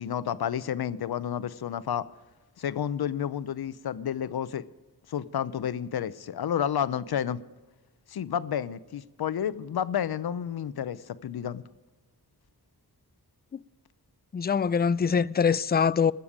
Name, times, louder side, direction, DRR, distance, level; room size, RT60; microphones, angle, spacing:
voice 1, 0.0-2.1 2.6-4.7 5.1-7.4 8.1-11.6, left 9 dB, 70° left, 0.7 m, -30 dB
voice 2, 14.3-16.1, left 6 dB, 25° left, 0.4 m, -24 dB
20.0 x 7.0 x 5.0 m
cardioid pair, 50°, 39 cm